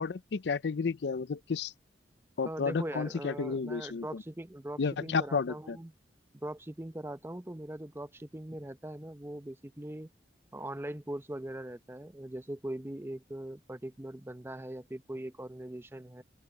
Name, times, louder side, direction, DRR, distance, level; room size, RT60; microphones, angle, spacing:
voice 1, 0.0-1.7 2.4-4.2 4.8-5.8, left 5 dB, 70° left, 0.5 m, -32 dB
voice 2, 2.4-5.9 6.3-10.1 10.5-16.2, right 1 dB, 15° right, 0.6 m, -41 dB
open air
head